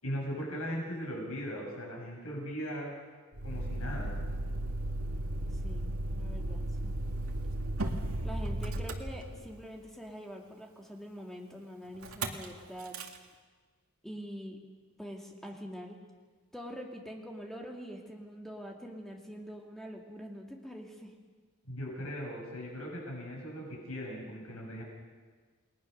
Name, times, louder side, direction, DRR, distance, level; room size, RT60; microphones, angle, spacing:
voice 1, 0.0-2.9 3.4-4.2 21.7-24.8, equal, 80° left, -2 dB, 7.1 m, -38 dB
Motor vehicle (road), 3.3-9.8 12.0-12.5 12.8-13.2, right 1 dB, 75° right, 2.1 m, -35 dB
voice 2, 5.6-7.0 8.2-13.0 14.0-14.6 15.0-16.0 16.5-21.1, equal, ahead, 1 dB, 2.4 m, -44 dB
29.0 x 20.5 x 6.7 m, 1.4 s
head